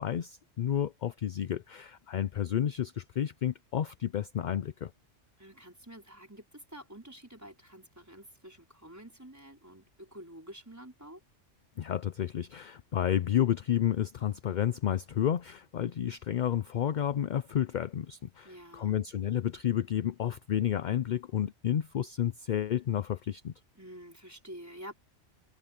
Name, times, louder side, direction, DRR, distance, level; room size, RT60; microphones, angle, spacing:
voice 1, 0.0-4.9 11.8-23.5, left 10 dB, 55° left, 0.5 m, -31 dB
voice 2, 5.4-11.2 18.4-19.0 23.7-24.9, equal, 15° right, 4.9 m, -49 dB
omnidirectional pair, 1.2 m